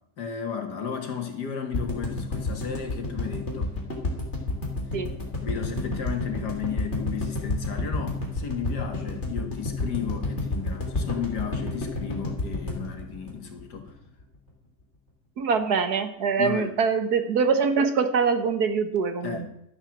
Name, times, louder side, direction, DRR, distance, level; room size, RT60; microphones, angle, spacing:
voice 1, 0.2-3.8 5.4-13.9 16.4-16.8 19.2-19.5, left 7 dB, 75° left, 5 dB, 2.4 m, -34 dB
sound 1, 1.7-13.9 14.2-14.3 14.5-14.6, left 2 dB, 40° left, 3.3 m, -29 dB
voice 2, 15.4-19.4, right 5 dB, 65° right, 8 dB, 1.8 m, -24 dB
12.5 x 9.0 x 7.2 m, 0.77 s
omnidirectional pair, 1.8 m